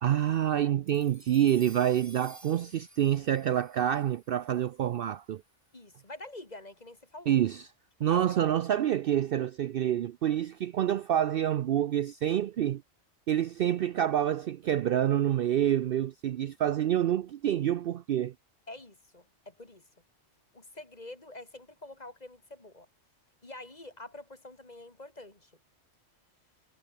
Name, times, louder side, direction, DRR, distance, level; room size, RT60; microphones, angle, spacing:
voice 1, 0.0-5.4 7.3-7.6 8.0-12.8 13.3-18.3, right 11 dB, 60° right, 0.6 m, -27 dB
sound 1, 0.9-5.4, right 1 dB, 15° right, 4.6 m, -55 dB
voice 2, 5.7-7.4 8.0-8.2 18.7-19.9 20.5-22.9 23.4-25.5, left 2 dB, 35° left, 3.0 m, -47 dB
omnidirectional pair, 1.2 m